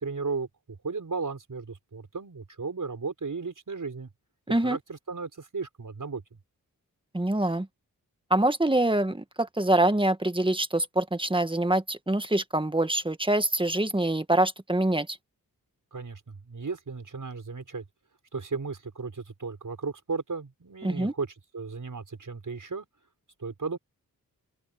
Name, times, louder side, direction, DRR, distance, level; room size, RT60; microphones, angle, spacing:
voice 1, 0.0-4.1 4.6-6.2 15.9-17.8 18.3-21.3 21.5-22.8 23.4-23.8, right 4 dB, 55° right, 6.1 m, -35 dB
voice 2, 7.1-7.7 8.3-15.2 20.8-21.1, right 1 dB, 15° right, 1.6 m, -25 dB
open air
cardioid pair, 45°, 36 cm